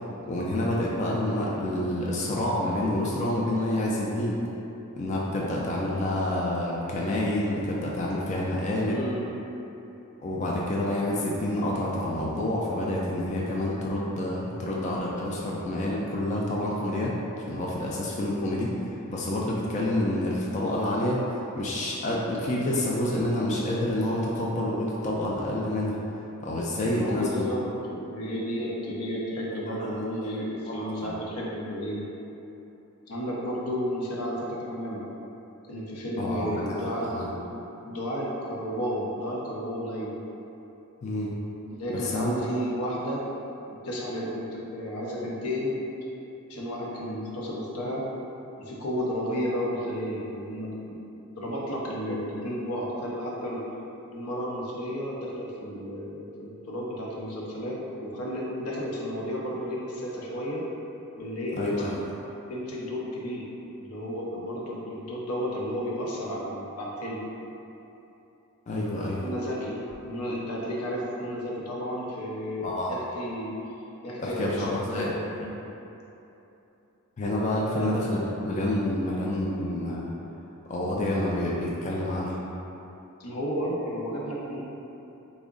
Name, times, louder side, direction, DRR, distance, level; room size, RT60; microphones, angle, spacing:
voice 1, 0.3-4.4 5.0-9.0 10.2-26.0 26.4-27.4 29.8-30.0 30.8-31.2 36.2-37.3 41.0-41.3 41.9-42.3 61.6-62.0 68.7-69.2 72.6-72.9 74.2-75.1 75.4-75.5 77.2-80.1 80.7-82.4, left 1 dB, 35° left, -4 dB, 0.3 m, -28 dB
voice 2, 8.9-9.3 26.9-32.1 33.1-35.1 35.7-37.6 37.9-40.2 41.7-43.2 43.7-45.8 46.5-48.1 48.6-51.0 51.4-53.6 54.1-60.6 61.2-61.7 62.5-63.5 63.8-67.2 69.1-69.8 70.0-73.5 74.0-75.2 77.7-78.0 83.2-84.6, equal, 85° left, -4 dB, 0.6 m, -32 dB
3.5 x 2.1 x 3.7 m, 3.0 s
head